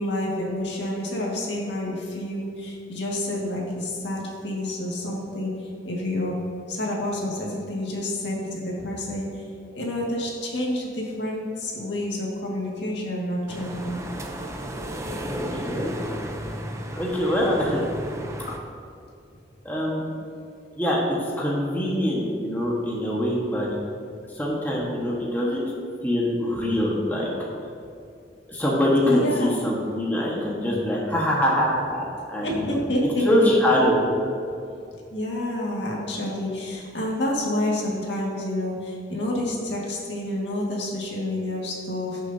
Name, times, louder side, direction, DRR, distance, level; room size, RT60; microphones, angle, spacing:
voice 1, 0.0-5.5 5.9-6.3 6.7-9.3 9.7-14.0 18.5-18.6 29.0-29.6 32.4-33.7 35.1-42.2, left 1 dB, 75° left, -3 dB, 2.0 m, -28 dB
sound 1, 13.5-18.6, right 1 dB, 15° right, 0.6 m, -34 dB
voice 2, 15.3-15.9 16.9-17.8 19.6-20.0 20.8-23.7 24.3-25.7 26.0-27.3 28.5-32.0 32.3-32.8 33.2-34.0 34.2-34.3, left 1 dB, 10° left, -5 dB, 1.4 m, -24 dB
17.5 x 6.4 x 2.8 m, 2.5 s
head